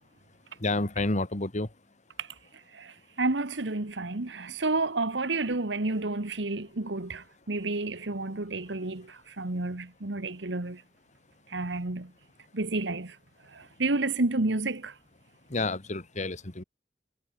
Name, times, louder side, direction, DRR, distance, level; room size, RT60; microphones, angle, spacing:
voice 1, 0.6-1.7 15.5-16.6, left 2 dB, 40° left, 2.0 m, -30 dB
voice 2, 2.7-10.8 11.5-12.1 12.5-13.1 13.5-14.9, right 2 dB, 75° right, 1.5 m, -30 dB
head